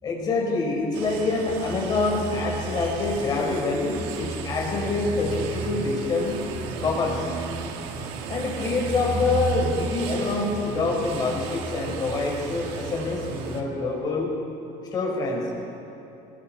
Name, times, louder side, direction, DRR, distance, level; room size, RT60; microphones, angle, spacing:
voice 1, 0.0-6.4 6.8-7.3 8.3-14.3 14.9-15.5, left 3 dB, 30° left, -2 dB, 5.2 m, -26 dB
sound 1, 0.9-13.6, right 5 dB, 85° right, 2.3 m, -36 dB
sound 2, 1.5-13.0, right 4 dB, 30° right, 2.5 m, -36 dB
27.0 x 21.5 x 4.6 m, 2.9 s
cardioid pair, 160°, 14 cm